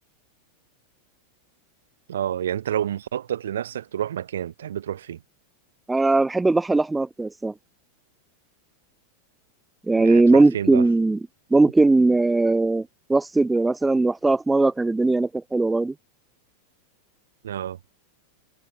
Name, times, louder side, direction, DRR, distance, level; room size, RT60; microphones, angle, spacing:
voice 1, 2.1-5.2 9.9-10.9 17.4-17.8, right 10 dB, 65° right, 1.0 m, -29 dB
voice 2, 5.9-7.5 9.9-11.2 11.5-15.9, right 2 dB, 10° right, 0.9 m, -19 dB
figure-of-eight pair, 90°, 0 cm